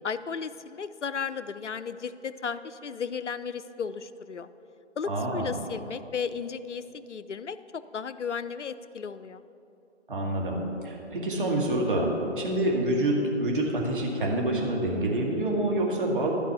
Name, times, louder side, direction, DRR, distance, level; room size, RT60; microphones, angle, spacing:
voice 1, 0.0-4.5 5.0-9.4, left 6 dB, 75° left, 14 dB, 0.5 m, -35 dB
voice 2, 5.1-5.5 10.1-10.6 10.8-16.3, right 1 dB, 45° right, -1 dB, 2.0 m, -27 dB
12.5 x 4.9 x 8.0 m, 2.8 s
figure-of-eight pair, 145°, 36 cm